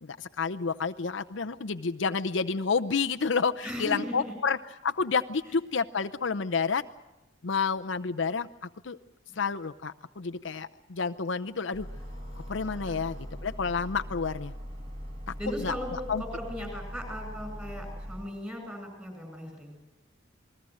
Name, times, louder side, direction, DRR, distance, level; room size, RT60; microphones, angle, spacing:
voice 1, 0.0-4.6 4.8-6.8 7.4-8.5 8.8-9.0 9.4-11.9 12.5-13.2 13.4-14.5 15.3-15.4 15.6-16.2, left 5 dB, 65° left, 8 dB, 0.7 m, -29 dB
voice 2, 3.6-4.3 12.8-13.0 15.4-19.8, equal, 10° right, 5 dB, 8.0 m, -37 dB
sound 1, 11.7-18.2, equal, 30° right, 6.8 m, -41 dB
27.5 x 20.5 x 6.4 m, 1.0 s
head